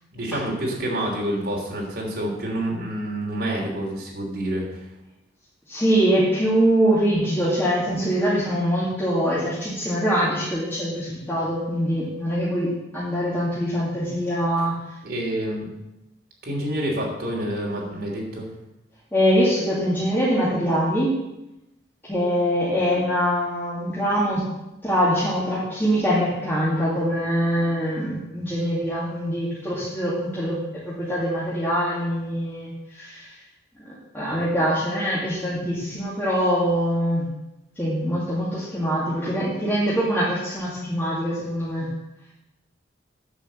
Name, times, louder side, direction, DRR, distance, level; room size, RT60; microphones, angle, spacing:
voice 1, 0.1-4.8 15.0-15.7 16.4-18.4, right 1 dB, 60° right, -1 dB, 3.1 m, -28 dB
voice 2, 5.7-14.8 19.1-21.1 22.1-24.4 24.8-30.6 30.8-33.3 33.9-37.3 37.8-41.9, equal, 15° left, -9 dB, 2.3 m, -23 dB
9.8 x 5.4 x 7.5 m, 0.95 s
head